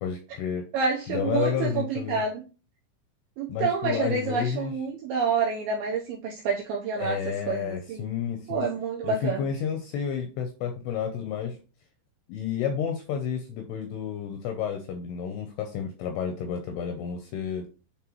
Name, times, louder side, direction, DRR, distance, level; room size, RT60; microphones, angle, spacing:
voice 1, 0.0-0.7 1.1-2.2 3.5-4.7 7.0-8.7 9.0-11.6 12.3-17.7, left 8 dB, 80° left, 5 dB, 2.4 m, -31 dB
voice 2, 0.7-2.4 3.4-7.2 7.5-8.1 8.5-9.5, right 5 dB, 80° right, -2 dB, 2.3 m, -28 dB
9.8 x 3.6 x 3.0 m, 0.34 s
omnidirectional pair, 5.4 m